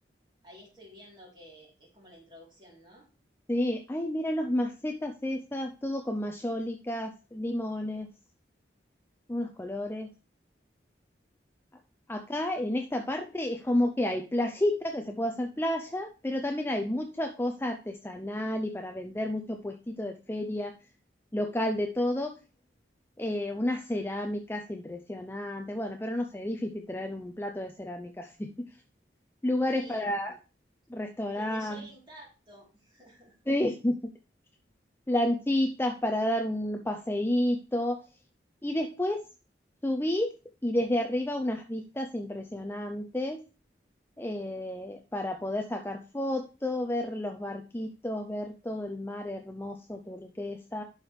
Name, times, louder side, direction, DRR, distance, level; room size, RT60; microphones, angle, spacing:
voice 1, 0.4-3.1 29.7-30.1 31.3-33.4, right 1 dB, 25° right, -3 dB, 3.6 m, -51 dB
voice 2, 3.5-8.1 9.3-10.1 12.1-20.7 21.3-22.3 23.2-28.5 29.4-30.3 30.9-31.9 33.5-33.9 35.1-38.0 38.6-39.2 39.8-40.3 40.6-43.4 44.2-50.8, left 1 dB, 10° left, 4 dB, 0.5 m, -31 dB
11.5 x 4.8 x 3.3 m, 0.33 s
head